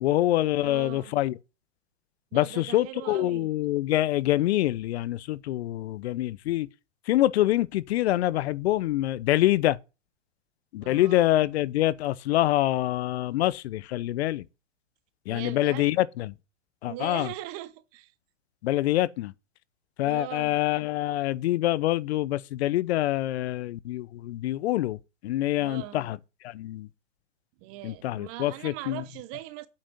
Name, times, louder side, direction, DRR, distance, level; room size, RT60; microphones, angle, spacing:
voice 1, 0.0-1.3 2.3-6.7 7.1-9.8 10.7-14.4 15.3-16.3 16.8-17.3 18.6-19.3 20.0-26.2 26.4-26.9 27.8-29.0, left 15 dB, 60° left, 0.8 m, -25 dB
voice 2, 0.6-1.1 2.3-3.5 10.8-11.3 15.3-15.9 16.9-18.1 20.0-20.6 25.6-26.1 27.6-29.7, right 16 dB, 40° right, 1.2 m, -40 dB
8.7 x 6.0 x 8.1 m
hypercardioid pair, 110°, 37 cm